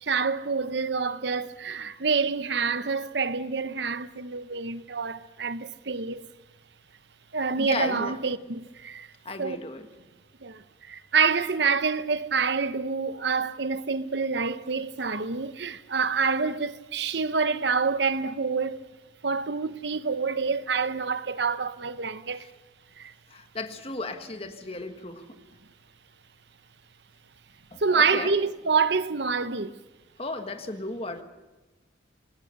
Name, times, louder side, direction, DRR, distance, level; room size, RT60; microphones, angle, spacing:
voice 1, 0.0-6.2 7.3-9.1 9.4-9.6 10.4-18.8 19.2-22.5 23.0-23.1 27.8-29.7, right 5 dB, 65° right, 0.9 m, -27 dB
voice 2, 7.5-8.2 9.2-9.9 22.4-22.5 23.3-25.3 27.7-28.3 30.2-31.2, left 2 dB, 30° left, 1.7 m, -35 dB
26.0 x 20.0 x 6.7 m
head